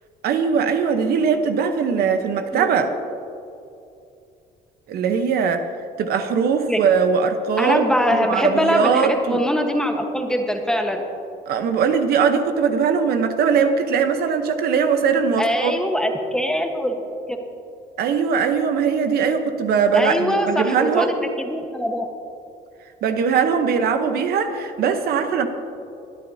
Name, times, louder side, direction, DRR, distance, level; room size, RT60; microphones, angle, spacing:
voice 1, 0.2-2.9 4.9-5.6 6.0-7.9 8.1-9.4 11.5-15.8 18.0-21.1 23.0-25.5, right 6 dB, 65° right, 7 dB, 0.9 m, -20 dB
voice 2, 7.6-11.0 15.4-17.0 17.3-17.4 19.9-22.0, equal, 5° left, 3 dB, 1.2 m, -22 dB
22.5 x 9.6 x 2.8 m, 2.6 s
cardioid pair, 110°, 17 cm